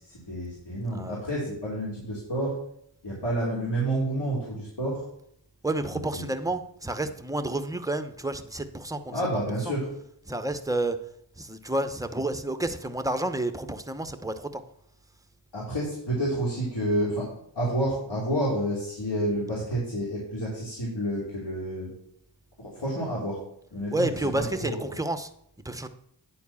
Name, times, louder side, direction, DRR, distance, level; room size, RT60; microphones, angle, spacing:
voice 1, 0.1-2.5 3.0-5.0 5.9-6.2 9.1-9.9 15.5-21.9 22.6-23.4 23.7-24.8, right 1 dB, 65° left, -7 dB, 3.3 m, -29 dB
voice 2, 5.6-9.1 9.7-9.8 10.3-11.0 11.4-14.6 23.9-25.3 25.6-25.9, right 1 dB, 10° right, 9 dB, 0.9 m, -30 dB
9.4 x 4.5 x 7.1 m, 0.71 s
cardioid pair, 45°, 45 cm